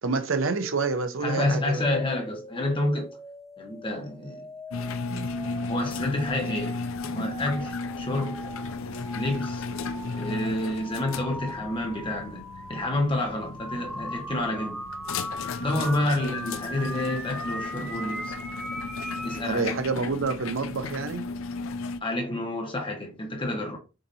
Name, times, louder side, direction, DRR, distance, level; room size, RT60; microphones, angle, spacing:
voice 1, 0.0-1.8 19.4-21.3, right 4 dB, 75° right, 0.7 m, -28 dB
sound 1, 0.5-19.4, equal, ahead, 0.8 m, -40 dB
voice 2, 1.2-3.1 3.6-4.4 4.8-5.3 5.7-8.4 9.1-9.6 10.2-14.8 15.6-18.3 19.2-19.7 22.0-23.8, left 1 dB, 25° left, 1.2 m, -29 dB
sound 2, 4.7-22.0, left 4 dB, 80° left, 0.4 m, -35 dB
6.4 x 2.8 x 2.8 m
head